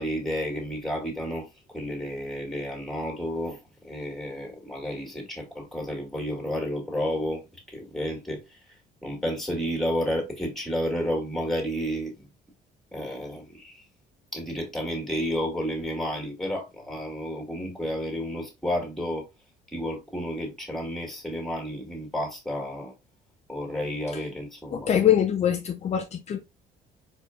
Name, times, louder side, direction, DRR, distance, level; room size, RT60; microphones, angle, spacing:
voice 1, 0.0-1.5 1.7-7.4 7.7-8.6 9.0-12.3 12.9-13.8 14.3-19.3 19.7-22.9 23.5-25.0, equal, ahead, 2.1 m, -31 dB
voice 2, 24.7-26.4, left 10 dB, 40° left, 0.5 m, -23 dB
4.6 x 4.2 x 2.4 m
cardioid pair, 110°, 17 cm